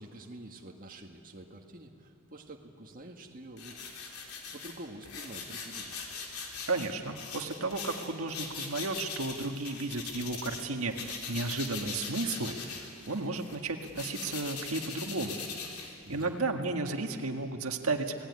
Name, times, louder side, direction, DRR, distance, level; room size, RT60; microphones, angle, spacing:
voice 1, 0.0-3.8 4.5-5.9 16.1-16.3, right 1 dB, 40° right, 2 dB, 1.8 m, -47 dB
sound 1, 3.6-10.7 10.9-16.4, left 5 dB, 90° left, 3.7 m, -41 dB
voice 2, 6.7-15.4 16.1-18.1, right 3 dB, 70° right, 4 dB, 1.8 m, -33 dB
28.5 x 18.5 x 9.7 m, 2.5 s
head